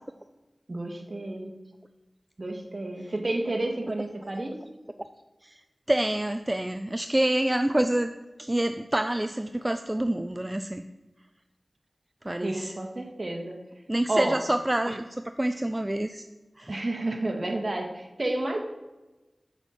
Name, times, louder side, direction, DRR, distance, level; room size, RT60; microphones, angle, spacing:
voice 1, 0.7-1.5 2.4-4.6 12.4-13.6 14.1-14.4 16.7-18.6, right 2 dB, 50° right, 3 dB, 1.6 m, -30 dB
voice 2, 5.9-8.1 8.4-10.8 12.2-12.7 13.9-16.2 16.6-16.8, right 1 dB, 20° right, 8 dB, 0.4 m, -27 dB
7.2 x 7.0 x 5.8 m, 1.1 s
wide cardioid pair, 45°, 0 cm